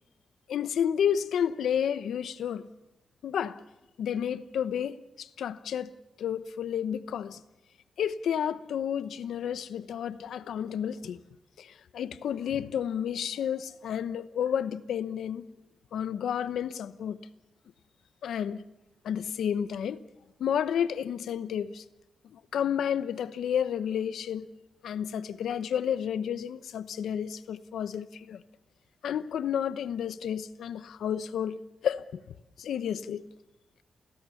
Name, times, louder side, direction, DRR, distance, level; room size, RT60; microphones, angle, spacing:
voice 1, 0.5-2.7 3.2-3.6 4.0-5.9 6.2-7.4 8.0-11.2 11.6-15.4 15.9-17.2 18.2-18.6 19.0-20.0 20.4-21.8 22.3-24.5 24.8-28.4 29.0-32.2 32.6-33.2, left 8 dB, 85° left, 0.9 m, -31 dB
28.5 x 17.5 x 7.1 m
cardioid pair, 65°, 0 cm